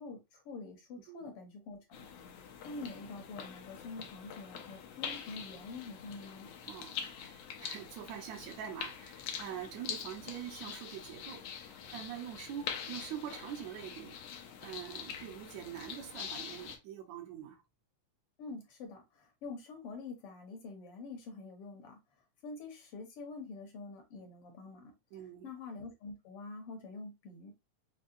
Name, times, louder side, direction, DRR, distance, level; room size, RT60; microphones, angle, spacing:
voice 1, 0.0-2.1 2.6-6.5 18.4-22.0 22.4-24.9 25.4-27.5, left 3 dB, 65° left, 1.5 m, -46 dB
sound 1, 1.9-16.8, left 8 dB, 80° left, 1.4 m, -44 dB
voice 2, 6.7-17.6 25.1-25.5, right 9 dB, 70° right, 2.1 m, -45 dB
5.3 x 2.2 x 2.6 m
omnidirectional pair, 3.5 m